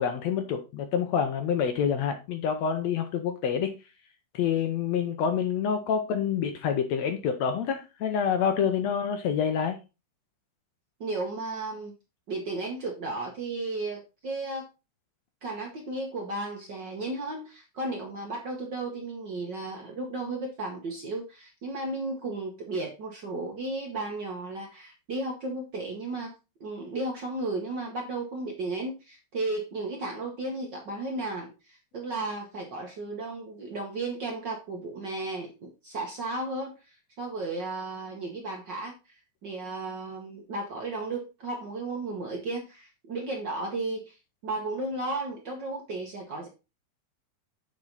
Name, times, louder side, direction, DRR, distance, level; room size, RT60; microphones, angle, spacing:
voice 1, 0.0-3.7 4.3-9.8, left 7 dB, 70° left, 1.7 m, -27 dB
voice 2, 11.0-11.9 12.3-14.7 15.4-26.3 26.6-39.1 39.4-44.2 44.4-46.5, right 2 dB, 60° right, 1.2 m, -34 dB
7.5 x 5.1 x 4.0 m
omnidirectional pair, 3.7 m